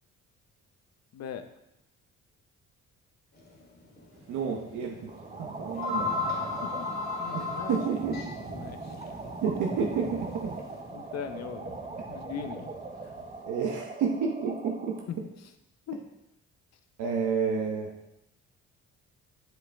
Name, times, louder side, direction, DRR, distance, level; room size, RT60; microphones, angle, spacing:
voice 1, 1.1-1.4 6.6-6.9 7.2-8.0 8.5-9.0 10.9-11.7 12.1-12.7 15.1-15.2 15.9-16.0, left 8 dB, 60° left, 8 dB, 0.7 m, -39 dB
sound 1, 3.4-3.6 4.0-4.1 5.2-5.3 5.5-10.8, left 4 dB, 30° left, 2.0 m, -35 dB
sound 2, 4.1-13.5, right 2 dB, 50° right, 2.5 m, -45 dB
voice 2, 4.3-5.1 5.4-6.1 7.3-8.1 9.4-10.5 13.5-15.0 17.0-17.9, right 6 dB, 80° right, 1 dB, 1.0 m, -30 dB
sound 3, 5.1-15.1, right 3 dB, 20° right, 0.7 m, -42 dB
7.3 x 5.7 x 3.4 m, 0.85 s
cardioid pair, 90°, 30 cm